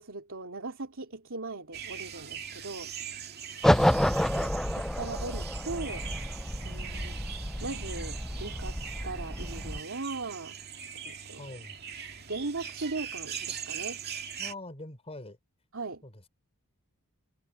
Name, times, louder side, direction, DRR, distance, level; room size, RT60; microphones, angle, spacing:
voice 1, 0.0-2.9 4.3-6.1 6.6-7.2 7.6-8.8 9.0-10.6 11.0-11.6 12.3-14.0 15.7-16.0, right 3 dB, 65° right, 3.0 m, -38 dB
sound 1, 1.7-14.5, right 8 dB, 45° right, 2.3 m, -41 dB
sound 2, 3.6-9.8, equal, ahead, 0.3 m, -29 dB
voice 2, 11.4-11.8 14.4-15.4 16.0-16.3, left 2 dB, 30° left, 4.5 m, -43 dB
head